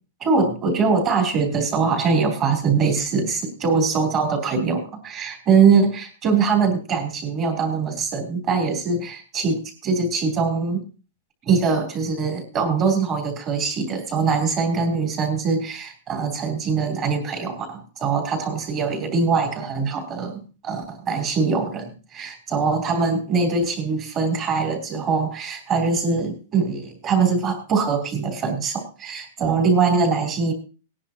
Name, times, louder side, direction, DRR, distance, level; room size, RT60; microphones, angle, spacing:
voice 1, 0.2-10.8 11.4-30.5, right 5 dB, 20° right, 2 dB, 3.2 m, -22 dB
19.5 x 10.0 x 2.9 m, 0.34 s
supercardioid pair, 175°, 0 cm